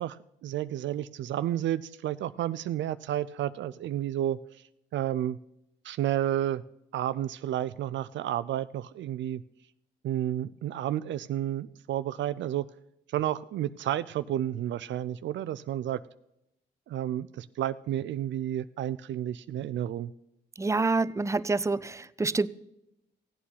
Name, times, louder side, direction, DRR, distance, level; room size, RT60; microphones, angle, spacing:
voice 1, 0.0-4.4 4.9-5.4 5.8-6.6 6.9-9.4 10.0-12.6 13.1-16.0 16.9-20.1, right 12 dB, 70° right, 14 dB, 0.5 m, -31 dB
voice 2, 20.6-22.5, right 3 dB, 15° right, 16 dB, 0.5 m, -27 dB
16.0 x 8.6 x 5.6 m, 0.83 s
cardioid pair, 90°, 20 cm